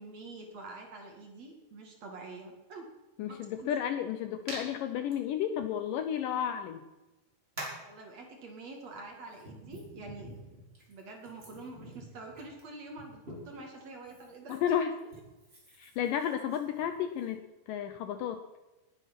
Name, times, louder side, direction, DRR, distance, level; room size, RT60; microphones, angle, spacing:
voice 1, 0.0-2.9 3.3-3.8 6.3-6.5 7.8-10.3 10.9-14.6 15.0-15.1, right 3 dB, 50° right, 2 dB, 2.8 m, -46 dB
voice 2, 3.2-6.8 14.5-14.9 15.8-17.4 17.7-18.4, left 9 dB, 75° left, 8 dB, 2.2 m, -32 dB
Hands, 4.5-4.6 5.1-5.2 6.4-6.5 7.6-7.9 8.8-13.6 14.0-17.3, right 1 dB, 15° right, 4.7 m, -47 dB
19.5 x 9.3 x 6.0 m, 1.1 s
omnidirectional pair, 4.4 m